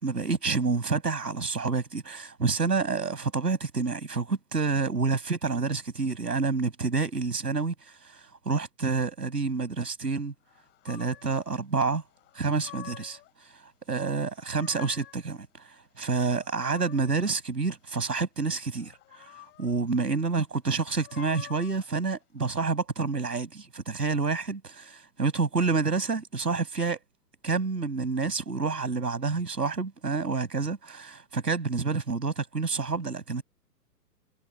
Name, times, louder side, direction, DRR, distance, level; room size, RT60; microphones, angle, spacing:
voice 1, 0.0-10.3 10.8-12.0 12.3-13.6 13.9-15.7 16.0-24.6 25.2-27.0 27.4-33.4, right 4 dB, 80° right, 5.8 m, -28 dB
sound 1, 10.8-11.4 12.3-13.3 14.2-15.2 16.2-17.3 18.8-19.7 20.8-21.9, left 17 dB, 20° left, 2.7 m, -48 dB
figure-of-eight pair, 120°, 48 cm